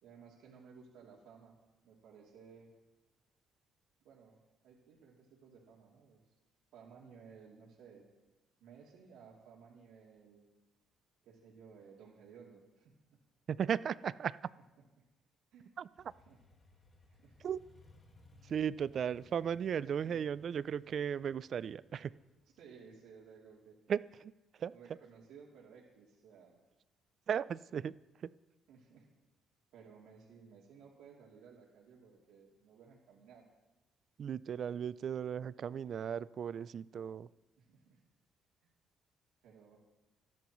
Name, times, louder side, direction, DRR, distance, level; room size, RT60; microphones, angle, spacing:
voice 1, 0.0-1.6 1.8-2.7 4.0-4.4 4.6-6.2 6.7-8.1 8.6-10.4 11.2-13.2 15.0-15.1 15.5-15.7 16.3-16.4 17.1-17.4 20.0-20.2 22.6-23.8 24.7-26.5 28.7-29.1 29.7-33.4 37.6-38.0 38.6-38.7 39.4-39.8, right 6 dB, 85° right, -4 dB, 3.0 m, -57 dB
voice 2, 13.5-14.4 15.8-16.1 17.4-17.6 18.4-22.1 23.9-24.7 27.3-28.3 34.2-37.3, right 8 dB, 40° right, 18 dB, 0.3 m, -36 dB
Motorcycle, 16.0-23.6, left 3 dB, 25° left, 1.8 m, -64 dB
27.0 x 10.5 x 3.1 m, 1.1 s
cardioid pair, 165°, 0 cm